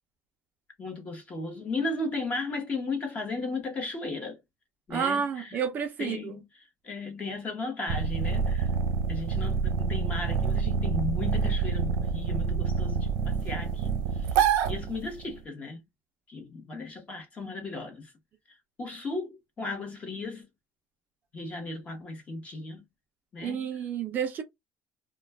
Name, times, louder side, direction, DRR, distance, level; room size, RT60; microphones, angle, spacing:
voice 1, 0.8-4.4 4.9-5.6 6.0-8.7 9.1-15.8 16.3-18.1 18.8-20.5 21.3-22.8 23.3-23.7, left 3 dB, 25° left, 0.9 m, -35 dB
voice 2, 4.9-6.2 23.4-24.4, right 7 dB, 30° right, 0.5 m, -30 dB
sound 1, 7.9-15.4, right 6 dB, 90° right, 0.8 m, -27 dB
2.3 x 2.2 x 3.3 m
cardioid pair, 180°, 6 cm